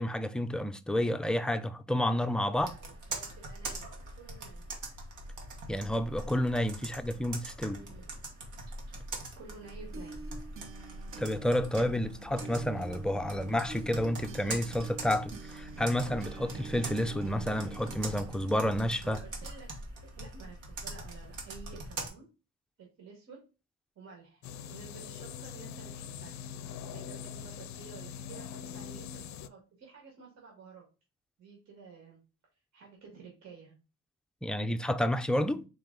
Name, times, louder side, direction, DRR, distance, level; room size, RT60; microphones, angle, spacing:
voice 1, 0.0-2.7 5.7-7.8 11.2-19.2 34.4-35.6, left 1 dB, 5° left, 0.4 m, -30 dB
voice 2, 2.5-4.6 7.8-8.1 9.4-10.2 19.0-19.7 20.0-22.2 22.8-23.4 24.0-26.4 26.9-30.9 31.4-32.2 32.7-33.7, right 5 dB, 60° right, 1.7 m, -51 dB
Computer keyboard, 2.6-22.1, right 2 dB, 80° right, 1.4 m, -43 dB
sound 1, 9.6-19.3, right 4 dB, 45° right, 0.8 m, -46 dB
sound 2, 24.4-29.5, left 8 dB, 65° left, 0.4 m, -43 dB
4.0 x 3.3 x 3.6 m
cardioid pair, 90°, 30 cm